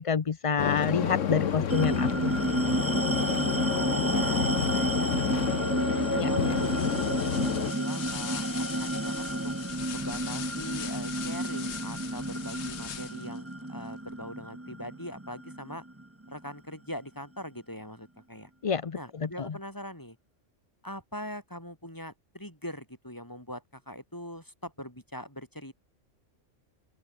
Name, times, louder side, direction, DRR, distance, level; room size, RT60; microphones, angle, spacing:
voice 1, 0.0-2.3 6.2-6.3 18.6-19.5, left 6 dB, 35° left, 0.6 m, -28 dB
sound 1, 0.6-7.7, left 8 dB, 80° left, 1.4 m, -30 dB
sound 2, 1.7-16.5, right 1 dB, 10° right, 1.5 m, -31 dB
voice 2, 3.7-5.5 5.9-7.3 7.7-9.5 9.9-15.8 16.3-18.5 18.9-20.2 20.8-25.7, equal, 15° left, 6.1 m, -42 dB
sound 3, 6.5-13.4, left 9 dB, 65° left, 1.2 m, -41 dB
open air
omnidirectional pair, 1.3 m